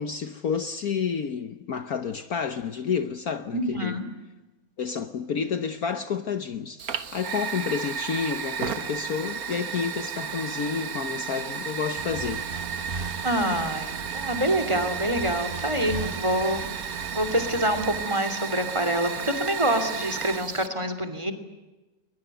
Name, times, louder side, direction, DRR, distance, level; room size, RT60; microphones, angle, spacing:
voice 1, 0.0-4.0 4.8-12.4, left 6 dB, 55° left, 1.4 m, -30 dB
voice 2, 3.5-4.0 13.2-21.3, right 1 dB, 15° right, 2.8 m, -26 dB
Fire, 6.8-20.7, right 7 dB, 55° right, 1.6 m, -33 dB
sound 1, 12.0-18.0, right 4 dB, 30° right, 1.5 m, -38 dB
22.0 x 21.5 x 9.1 m
omnidirectional pair, 2.0 m